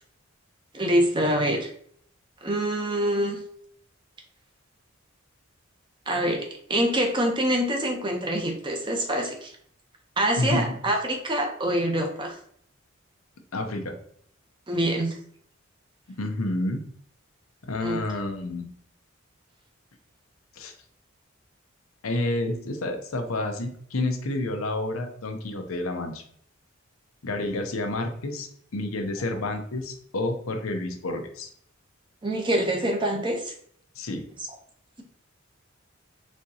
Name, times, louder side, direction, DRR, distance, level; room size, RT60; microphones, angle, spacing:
voice 1, 0.7-1.7 2.4-3.4 6.1-9.5 10.2-12.4 14.7-15.1 17.8-18.0 24.7-24.8 32.2-33.5, right 1 dB, 25° right, 3 dB, 0.7 m, -25 dB
voice 2, 13.5-13.9 16.1-16.8 17.6-18.7 20.5-20.7 22.0-26.2 27.2-31.5 34.0-34.3, left 2 dB, 90° left, 5 dB, 0.7 m, -29 dB
4.3 x 3.5 x 2.8 m, 0.64 s
head